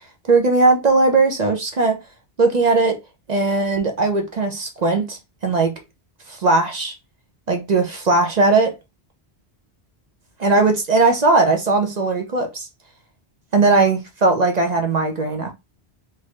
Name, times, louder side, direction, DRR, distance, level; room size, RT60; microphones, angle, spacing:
voice 1, 0.3-2.0 2.4-3.0 3.3-5.8 6.3-6.9 7.5-8.7 10.4-12.7 13.5-15.5, right 3 dB, 45° right, 0.7 m, -18 dB
3.4 x 2.5 x 3.2 m
omnidirectional pair, 1.1 m